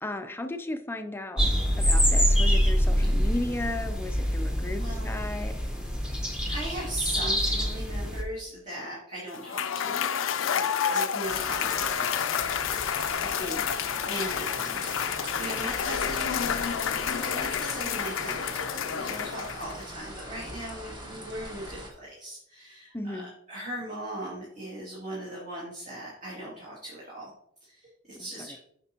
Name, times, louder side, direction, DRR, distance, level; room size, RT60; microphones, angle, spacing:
voice 1, 0.0-1.5 1.8-5.6 13.2-13.7 22.9-23.3 28.2-28.6, left 1 dB, 10° left, 8 dB, 0.4 m, -35 dB
sound 1, 1.4-8.2, equal, 5° right, 0.9 m, -25 dB
voice 2, 4.7-5.1 6.5-10.1 10.4-12.3 13.4-13.7 14.0-14.9 15.4-16.4 17.3-27.3 27.6-28.6, right 1 dB, 40° right, -7 dB, 2.3 m, -39 dB
Cheering / Applause / Crowd, 9.3-19.8, left 8 dB, 85° left, 0.4 m, -29 dB
sound 2, 11.2-21.9, right 1 dB, 25° right, 1.4 m, -40 dB
7.7 x 5.8 x 2.9 m, 0.71 s
head